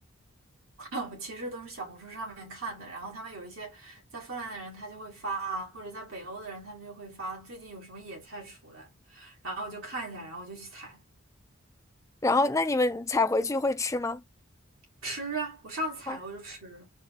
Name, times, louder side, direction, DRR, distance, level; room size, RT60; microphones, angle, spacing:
voice 1, 0.8-11.0 15.0-16.9, right 2 dB, 85° right, 2.1 m, -38 dB
voice 2, 12.2-14.2 16.1-16.2, left 3 dB, 15° left, 0.3 m, -26 dB
4.2 x 2.1 x 3.7 m
head